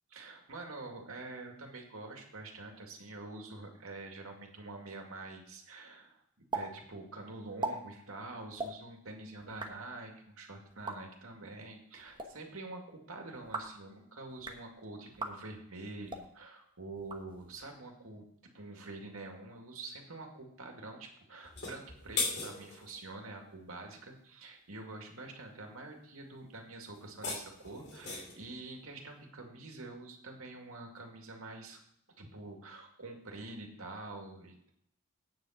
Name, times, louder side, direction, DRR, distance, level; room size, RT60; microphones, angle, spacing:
voice 1, 0.1-6.2 6.5-18.2 18.5-31.8 32.2-34.7, right 2 dB, 80° right, 2 dB, 2.2 m, -46 dB
sound 1, 6.5-6.7 6.9-7.0 7.4-7.7 8.5-8.7 9.4-9.7 10.7-11.0 12.0-12.3 13.3-13.8 14.3-14.6 15.1-15.3 16.0-16.3 17.0-17.7, right 3 dB, 20° right, 1.1 m, -39 dB
sound 2, 21.4-23.0 27.0-28.5, left 4 dB, 50° left, 2.7 m, -38 dB
9.3 x 7.4 x 5.8 m, 0.71 s
head